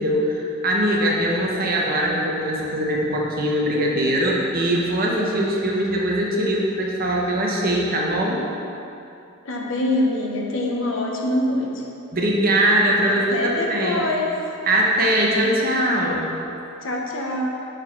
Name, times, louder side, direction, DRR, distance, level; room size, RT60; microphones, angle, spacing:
voice 1, 0.0-8.4 12.1-14.0 14.7-16.3, right 1 dB, 45° right, -2 dB, 1.0 m, -21 dB
voice 2, 9.4-11.8 13.1-14.3 16.8-17.5, left 1 dB, 70° left, 0 dB, 0.9 m, -24 dB
6.4 x 4.3 x 5.7 m, 2.8 s
head